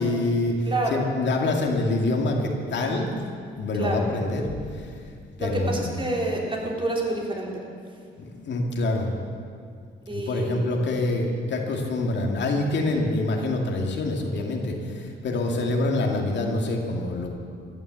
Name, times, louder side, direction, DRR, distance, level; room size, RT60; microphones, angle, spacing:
voice 1, 0.0-3.1 3.6-4.9 5.4-6.1 8.3-9.1 10.1-17.3, left 2 dB, 65° left, 1 dB, 2.3 m, -26 dB
voice 2, 0.7-1.0 3.8-4.0 5.4-7.5 10.1-10.7, right 2 dB, 25° right, -2 dB, 3.8 m, -28 dB
15.5 x 11.0 x 7.7 m, 2.2 s
cardioid pair, 90°, 20 cm